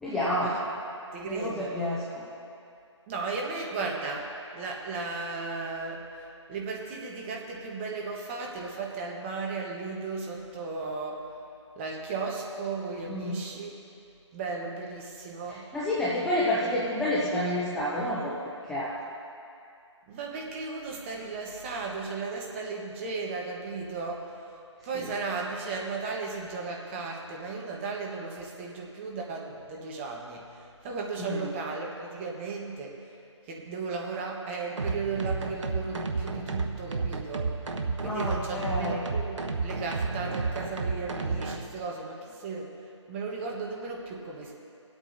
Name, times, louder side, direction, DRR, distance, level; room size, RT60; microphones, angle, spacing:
voice 1, 0.0-0.5 1.2-2.2 13.1-13.4 15.4-18.3 18.7-18.9 24.9-25.1 31.2-31.5 38.0-39.1, left 1 dB, ahead, -7 dB, 0.4 m, -29 dB
voice 2, 1.1-1.7 3.1-4.3 4.5-6.0 6.5-11.2 11.8-13.7 14.3-15.6 20.1-24.3 24.8-30.4 30.8-32.9 33.5-37.5 38.0-42.2 42.4-42.7 43.1-44.5, right 4 dB, 25° right, -1 dB, 1.2 m, -35 dB
sound 1, 34.8-41.6, right 4 dB, 75° right, 1.1 m, -31 dB
22.5 x 8.3 x 2.7 m, 2.5 s
figure-of-eight pair, 155°, 16 cm